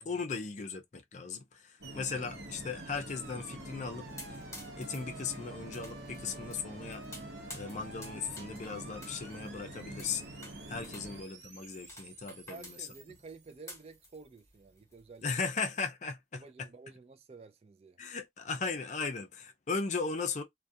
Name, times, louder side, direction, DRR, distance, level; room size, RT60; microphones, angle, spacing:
voice 1, 0.1-4.4 4.8-7.0 7.5-10.3 10.7-12.9 15.2-16.4 18.0-20.4, left 4 dB, 40° left, 0.5 m, -37 dB
sound 1, 1.8-11.2, right 1 dB, 60° right, 0.8 m, -46 dB
sound 2, 1.8-14.1, right 4 dB, 85° right, 0.9 m, -52 dB
sound 3, 4.1-15.4, left 2 dB, 15° left, 1.0 m, -52 dB
voice 2, 12.3-15.3 16.3-18.0 18.5-18.6, right 4 dB, 35° right, 0.3 m, -52 dB
2.3 x 2.2 x 2.6 m
head